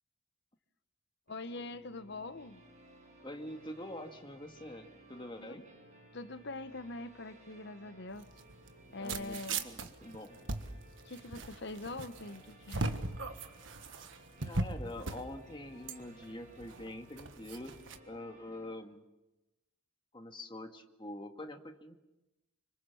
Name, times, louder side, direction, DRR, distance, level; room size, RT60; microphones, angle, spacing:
voice 1, 1.3-2.6 5.4-5.6 6.1-8.3 8.9-9.7 11.0-12.9, left 2 dB, 55° left, 12 dB, 1.1 m, -43 dB
sound 1, 1.3-18.7, right 1 dB, 35° right, 6.7 m, -59 dB
voice 2, 3.2-5.7 9.0-10.4 14.4-17.8 18.1-19.0 20.1-22.0, left 1 dB, 25° left, 5 dB, 1.9 m, -45 dB
sound 2, 8.1-18.0, right 3 dB, 65° right, 1.5 m, -40 dB
26.5 x 25.0 x 7.2 m, 0.99 s
head